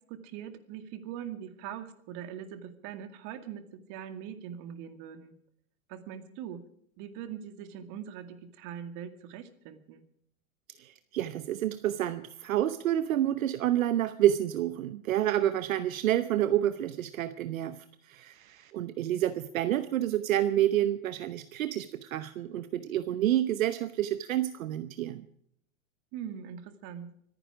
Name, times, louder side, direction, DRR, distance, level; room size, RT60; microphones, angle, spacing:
voice 1, 0.1-3.6 3.9-5.3 5.9-6.6 7.0-10.0 26.1-27.1, right 9 dB, 45° right, 9 dB, 2.2 m, -42 dB
voice 2, 10.8-25.2, right 12 dB, 75° right, 12 dB, 1.0 m, -29 dB
24.5 x 10.0 x 5.0 m, 0.71 s
hypercardioid pair, 110°, 41 cm